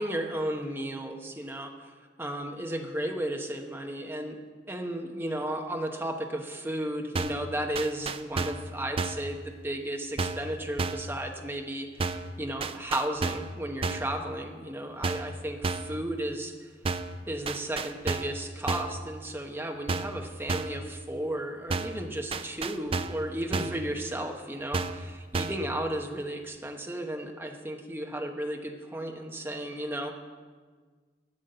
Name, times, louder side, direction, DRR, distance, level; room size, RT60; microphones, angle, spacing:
voice 1, 0.0-1.7 2.2-16.5 17.3-30.2, right 1 dB, 10° right, 2 dB, 1.0 m, -34 dB
sound 1, 7.2-7.5 7.8-8.7 9.0-9.3 10.2-10.5 10.8-11.1 12.0-12.3 12.6-13.5 13.8-14.1 15.0-15.4 15.6-16.0 16.9-17.2 17.5-18.4 18.7-19.0 19.9-20.2 20.5-20.8 21.7-22.0 22.3-23.2 23.5-23.9 24.7-25.1 25.3-25.7, right 3 dB, 30° right, 0.4 m, -31 dB
10.5 x 7.3 x 9.3 m, 1.5 s
head